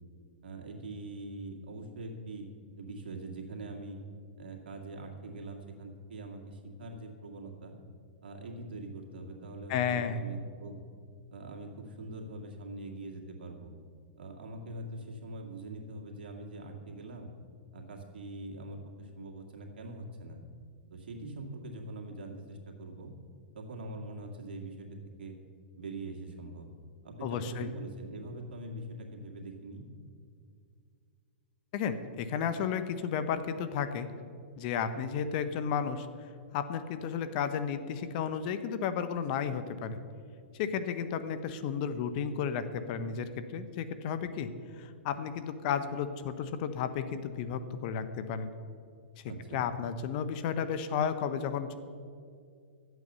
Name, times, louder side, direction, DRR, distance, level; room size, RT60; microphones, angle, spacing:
voice 1, 0.4-2.5 2.8-4.0 4.4-7.8 8.2-10.8 11.3-13.7 14.2-17.3 17.7-20.4 20.9-23.1 23.5-24.9 25.2-25.4 25.8-26.7 27.0-29.8 49.3-49.7, right 2 dB, 75° right, 0 dB, 2.1 m, -43 dB
voice 2, 9.7-10.2 27.2-27.7 31.7-34.1 34.6-36.1 36.5-40.0 40.5-44.5 44.8-48.5 49.5-51.8, left 7 dB, 50° left, 11 dB, 0.8 m, -33 dB
12.5 x 8.1 x 5.5 m, 2.3 s
hypercardioid pair, 125°, 6 cm